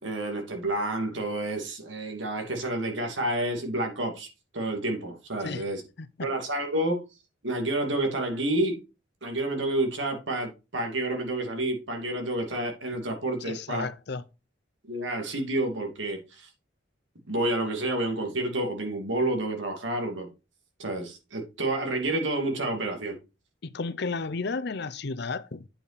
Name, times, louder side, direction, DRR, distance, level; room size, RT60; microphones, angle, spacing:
voice 1, 0.0-4.3 4.5-5.8 6.2-7.0 7.4-8.8 9.2-13.8 14.9-16.5 17.3-20.3 20.8-23.2, right 1 dB, 80° right, 2.6 m, -29 dB
voice 2, 6.0-6.3 13.4-14.2 23.6-25.7, left 4 dB, 60° left, 0.7 m, -33 dB
8.7 x 5.5 x 4.1 m
head